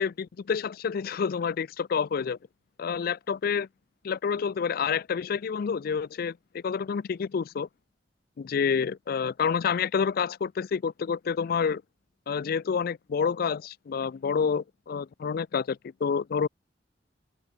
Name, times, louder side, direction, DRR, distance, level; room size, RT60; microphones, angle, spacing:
voice 1, 0.0-2.4 2.8-3.7 4.0-7.7 8.4-11.8 12.3-16.5, left 6 dB, 55° left, 0.4 m, -28 dB
open air
head